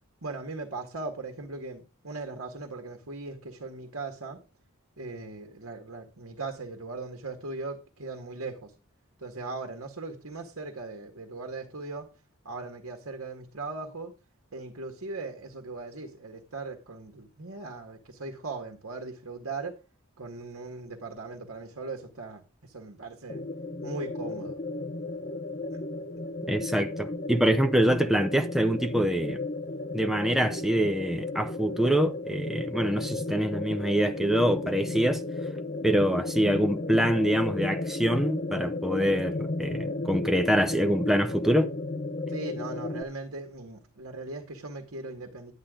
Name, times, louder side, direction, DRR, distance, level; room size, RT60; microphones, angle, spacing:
voice 1, 0.2-4.4 5.0-8.7 9.2-12.1 12.5-14.1 14.5-19.8 20.2-23.4 23.8-24.6 25.7-25.8 42.3-45.5, right 3 dB, 75° right, 1.8 m, -39 dB
sound 1, 23.3-43.0, left 2 dB, 35° left, 0.8 m, -34 dB
voice 2, 26.5-29.4 29.9-35.2 35.8-41.7, equal, ahead, 0.8 m, -25 dB
12.0 x 9.9 x 3.8 m
head